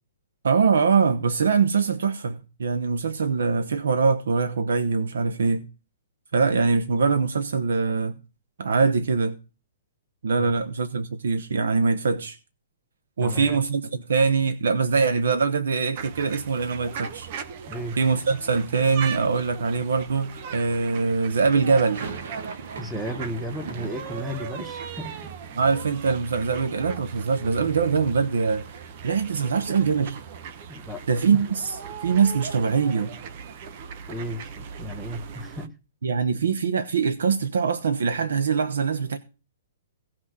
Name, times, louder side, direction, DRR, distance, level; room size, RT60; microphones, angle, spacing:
voice 1, 0.4-5.6 6.3-8.1 8.6-9.4 10.2-12.4 13.2-17.3 18.0-22.1 25.6-30.2 31.1-33.1 36.0-39.2, right 5 dB, 90° right, 1.1 m, -23 dB
voice 2, 13.2-13.6 17.7-18.0 22.8-25.2 30.7-31.0 34.1-35.7, equal, 5° right, 0.9 m, -34 dB
sound 1, 15.9-35.7, right 7 dB, 35° right, 0.8 m, -39 dB
sound 2, 21.7-27.7 27.9-28.8 29.1-29.2 29.4-31.6, right 5 dB, 55° right, 1.7 m, -42 dB
16.0 x 6.2 x 6.2 m
hypercardioid pair, 170°, 0 cm